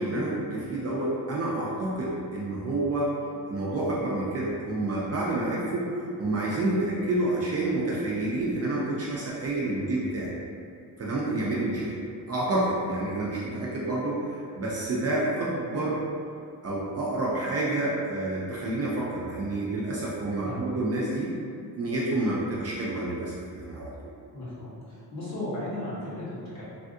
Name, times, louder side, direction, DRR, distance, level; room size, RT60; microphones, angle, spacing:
voice 1, 0.0-3.1 3.5-10.3 11.0-12.0 12.3-16.0 16.6-21.3 21.7-23.9, right 2 dB, 40° right, -6 dB, 0.4 m, -29 dB
voice 2, 24.3-26.6, left 1 dB, 50° left, -10 dB, 1.3 m, -35 dB
3.4 x 2.4 x 2.6 m, 2.4 s
wide cardioid pair, 155°, 37 cm